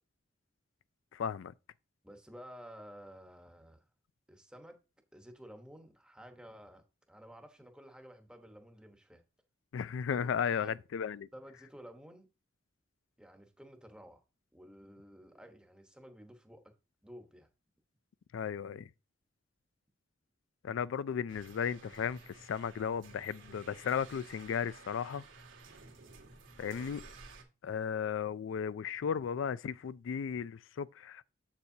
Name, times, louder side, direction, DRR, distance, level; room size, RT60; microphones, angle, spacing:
voice 1, 1.1-1.5 9.7-11.3 18.3-18.9 20.6-25.2 26.6-27.0 27.6-31.2, left 7 dB, 80° left, 0.3 m, -35 dB
voice 2, 2.0-3.8 4.3-4.8 5.1-9.2 10.1-10.8 11.3-12.3 13.2-14.2 14.5-16.6 17.0-17.5 26.6-26.8, equal, 5° right, 1.1 m, -53 dB
sound 1, 21.3-27.4, right 3 dB, 85° right, 2.2 m, -54 dB
8.0 x 7.1 x 2.7 m
head